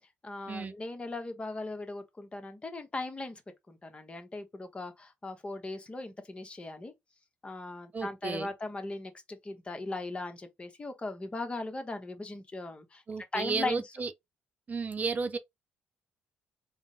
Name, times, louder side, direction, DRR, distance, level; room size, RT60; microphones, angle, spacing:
voice 1, 0.2-3.4 3.7-6.9 7.4-13.0 13.3-13.8, left 2 dB, 25° left, 0.9 m, -38 dB
voice 2, 7.9-8.5 13.1-14.1 14.7-15.4, right 4 dB, 40° right, 0.5 m, -33 dB
3.7 x 2.1 x 3.9 m
supercardioid pair, 70°, 4 cm